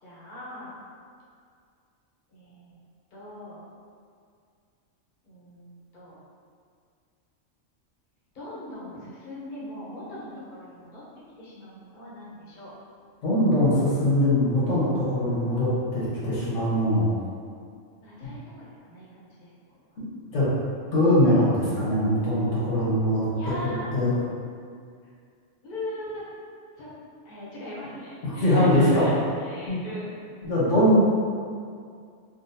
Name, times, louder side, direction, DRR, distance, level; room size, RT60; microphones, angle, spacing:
voice 1, 0.0-0.8 2.3-2.7 3.1-3.6 5.2-6.2 8.3-11.0 11.4-12.7 18.0-19.8 23.3-23.9 25.6-26.2 26.8-26.9 27.2-30.2, left 1 dB, 45° left, -7 dB, 0.9 m, -39 dB
voice 2, 13.2-17.1 20.3-20.5 20.9-23.3 23.6-24.2 28.2-29.0 29.7-29.8 30.4-31.0, left 1 dB, 70° left, -8 dB, 1.3 m, -22 dB
3.8 x 2.2 x 2.6 m, 2.2 s
omnidirectional pair, 1.3 m